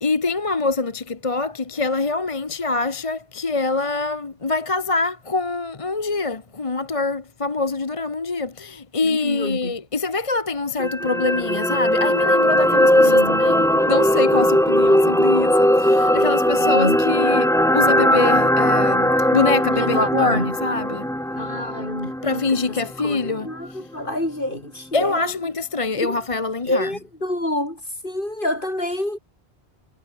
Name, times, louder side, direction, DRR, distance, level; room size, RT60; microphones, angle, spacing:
voice 1, 0.0-21.1 22.2-23.8 24.9-26.9, left 3 dB, 30° left, 1.1 m, -24 dB
voice 2, 9.0-9.8 13.0-13.4 16.6-17.0 19.8-20.6 21.4-25.3 26.0-26.2 26.6-29.2, left 1 dB, 50° left, 7.7 m, -27 dB
sound 1, 10.8-23.1 23.5-23.6, equal, 5° left, 1.0 m, -19 dB
omnidirectional pair, 1.1 m